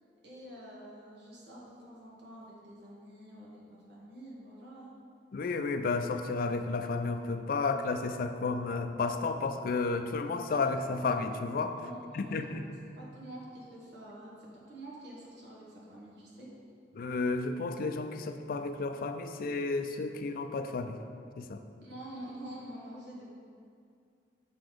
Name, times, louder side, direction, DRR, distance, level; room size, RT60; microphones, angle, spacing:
voice 1, 0.2-4.9 11.7-12.6 12.9-16.5 21.8-23.2, right 1 dB, 75° right, -5 dB, 1.5 m, -47 dB
voice 2, 5.3-11.8 12.1-12.6 16.9-21.0 21.4-21.6, left 3 dB, 55° left, 8 dB, 0.4 m, -32 dB
5.9 x 5.0 x 3.8 m, 2.3 s
head